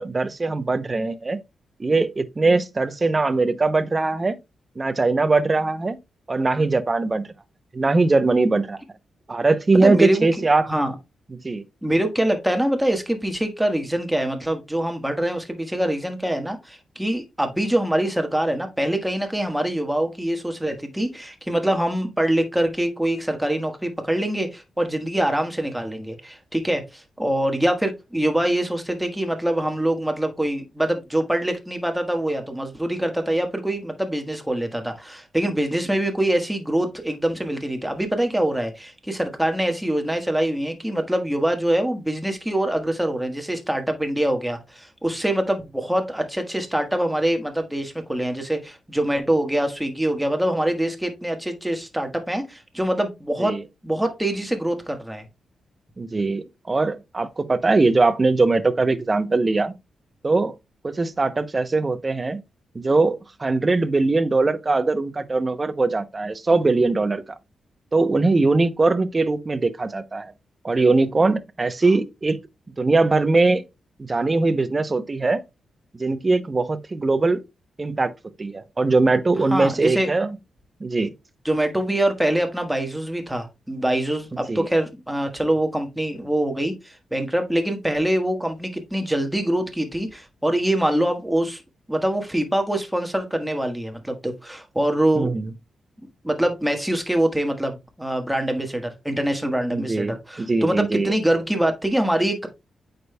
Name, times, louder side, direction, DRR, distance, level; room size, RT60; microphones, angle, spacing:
voice 1, 0.0-1.4 1.8-4.4 4.8-6.0 6.3-7.3 7.7-8.8 9.3-10.7 11.3-11.6 53.4-53.6 56.0-59.7 60.2-60.5 60.8-62.4 62.7-67.2 67.9-70.3 70.6-72.4 72.8-73.6 74.0-75.4 76.0-77.4 77.8-78.1 78.4-80.4 80.8-81.1 84.5-84.7 95.2-95.5 99.7-101.1, right 3 dB, 25° right, 0.7 m, -21 dB
voice 2, 9.7-10.3 10.7-10.9 11.8-53.6 53.8-55.2 79.5-80.1 81.4-91.6 91.9-95.3 96.2-102.5, right 1 dB, 5° right, 1.3 m, -24 dB
8.6 x 5.1 x 2.2 m
cardioid pair, 105°, 0 cm